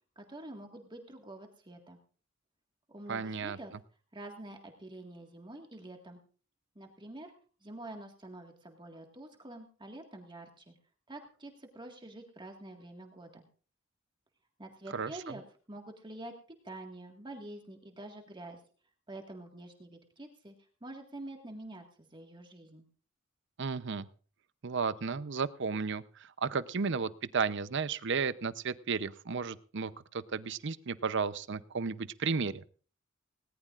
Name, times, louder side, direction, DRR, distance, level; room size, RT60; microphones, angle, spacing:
voice 1, 0.2-2.0 2.9-3.7 4.1-6.2 6.8-7.3 7.6-10.7 11.1-13.4 14.6-16.4 16.6-18.6 19.1-20.6 20.8-22.8, right 1 dB, 25° right, 3 dB, 1.8 m, -47 dB
voice 2, 3.1-3.6 14.9-15.1 23.6-24.1 24.6-32.6, right 5 dB, 60° right, 15 dB, 0.7 m, -33 dB
19.0 x 18.5 x 2.5 m, 0.39 s
head